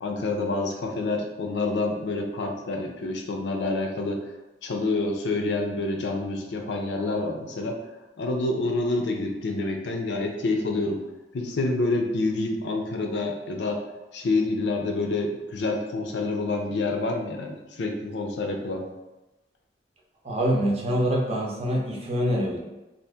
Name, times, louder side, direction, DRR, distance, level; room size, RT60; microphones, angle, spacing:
voice 1, 0.0-4.2 4.6-7.8 8.2-11.0 11.3-13.8 14.1-18.9, left 2 dB, 75° left, 2 dB, 0.5 m, -27 dB
voice 2, 20.2-22.6, equal, 35° right, -2 dB, 0.6 m, -25 dB
2.7 x 2.5 x 3.5 m, 1.1 s
head